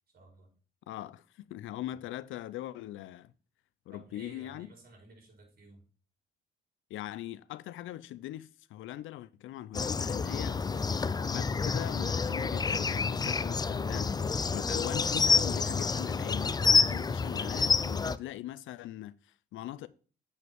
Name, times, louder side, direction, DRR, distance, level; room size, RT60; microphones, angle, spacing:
voice 1, 0.1-0.5 3.9-5.8, right 3 dB, 50° right, 4.1 m, -54 dB
voice 2, 0.9-3.3 3.9-4.7 6.9-10.6 11.3-14.2 14.5-19.9, left 14 dB, 85° left, 0.5 m, -41 dB
sound 1, 9.7-18.2, left 4 dB, 20° left, 0.4 m, -28 dB
8.0 x 5.3 x 3.5 m
cardioid pair, 90°, 20 cm